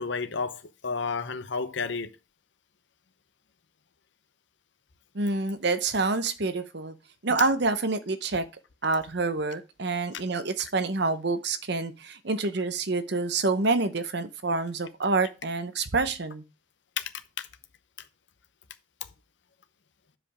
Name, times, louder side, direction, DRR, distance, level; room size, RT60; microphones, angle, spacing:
voice 1, 0.0-2.1 17.0-17.1 17.4-17.5, left 5 dB, 60° left, 0.8 m, -31 dB
voice 2, 5.1-7.0 7.2-8.5 8.8-16.4, right 3 dB, 55° right, 0.9 m, -27 dB
7.7 x 5.1 x 5.0 m
head